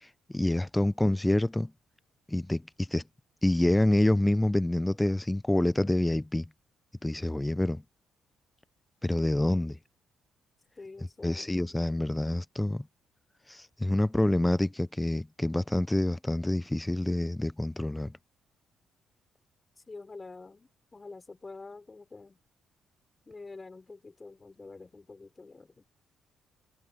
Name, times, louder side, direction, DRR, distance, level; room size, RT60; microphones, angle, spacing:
voice 1, 0.0-1.7 2.3-3.0 3.4-6.5 7.0-7.8 9.0-9.8 11.2-12.8 13.5-18.1, left 1 dB, 10° left, 0.5 m, -27 dB
voice 2, 10.8-11.6 19.8-22.4 23.3-25.8, left 3 dB, 25° left, 5.4 m, -47 dB
cardioid pair, 90°, 0 cm